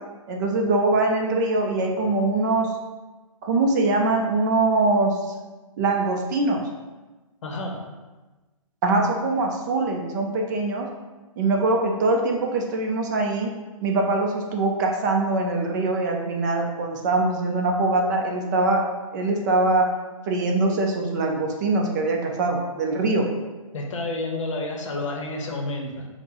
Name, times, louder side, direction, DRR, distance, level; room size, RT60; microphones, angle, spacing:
voice 1, 0.3-2.7 3.4-5.1 5.8-6.6 8.8-10.9 11.4-13.5 13.8-18.8 19.1-19.9 20.3-23.3, right 2 dB, 30° right, 1 dB, 0.5 m, -23 dB
voice 2, 7.4-7.8 23.7-26.1, left 2 dB, 60° left, 1 dB, 0.7 m, -30 dB
5.6 x 2.1 x 2.9 m, 1.2 s
hypercardioid pair, 140°, 18 cm